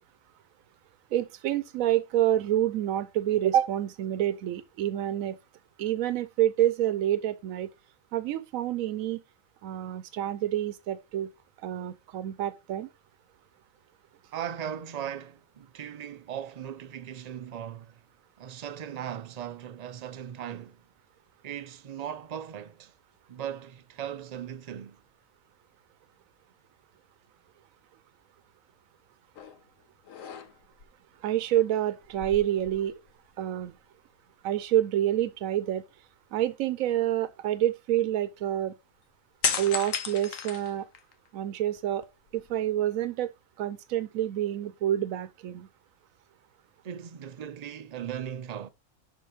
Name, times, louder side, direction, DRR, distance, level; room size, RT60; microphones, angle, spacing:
voice 1, 1.1-5.4 5.8-7.7 8.1-9.2 9.6-11.3 11.6-12.9 31.2-33.0 33.4-33.7 34.4-35.8 36.3-38.7 39.6-40.9 41.3-42.1 42.3-43.3 43.6-45.7, right 12 dB, 90° right, 1.0 m, -28 dB
voice 2, 14.3-18.0 18.4-20.8 21.4-22.9 23.3-25.0 46.8-48.7, right 9 dB, 60° right, 0.4 m, -38 dB
sound 1, 29.4-29.6 30.0-30.9 32.0-33.3 33.6-33.8 39.4-41.3 41.8-42.7, left 7 dB, 80° left, 1.2 m, -34 dB
6.7 x 5.3 x 3.5 m
omnidirectional pair, 1.4 m